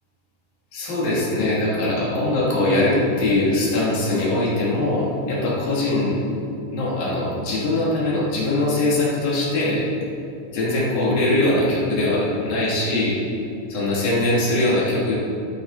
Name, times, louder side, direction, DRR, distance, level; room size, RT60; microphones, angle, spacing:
voice 1, 0.7-6.1 6.7-9.9 10.5-13.2 13.7-15.2, left 2 dB, 55° left, -7 dB, 4.5 m, -21 dB
13.0 x 12.0 x 4.3 m, 2.6 s
omnidirectional pair, 5.3 m